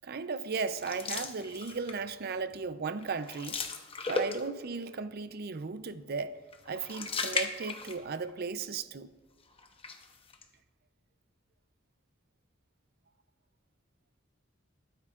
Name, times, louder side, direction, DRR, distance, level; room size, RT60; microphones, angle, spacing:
voice 1, 0.0-3.6 4.1-6.4 6.7-9.1, right 4 dB, 50° right, 0.5 m, -36 dB
sound 1, 0.8-2.1 2.5-2.7 3.0-4.8 6.5-8.3 8.6-8.7 9.6-10.4, left 4 dB, 30° left, 0.9 m, -37 dB
20.5 x 9.4 x 2.4 m
head